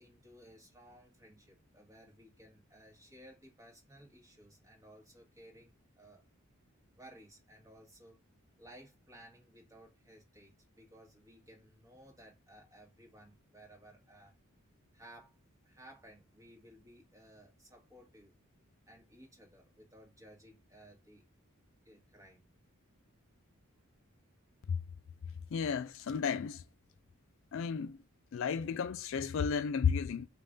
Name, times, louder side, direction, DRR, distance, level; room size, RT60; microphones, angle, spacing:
voice 1, 0.0-6.2 7.0-8.2 8.6-14.3 14.9-15.4 15.6-18.3 18.9-21.2 21.8-22.4, right 1 dB, 15° right, 1.6 m, -58 dB
voice 2, 25.5-26.6 27.5-28.0 28.3-30.3, left 6 dB, 60° left, 0.3 m, -33 dB
5.3 x 2.6 x 3.6 m
head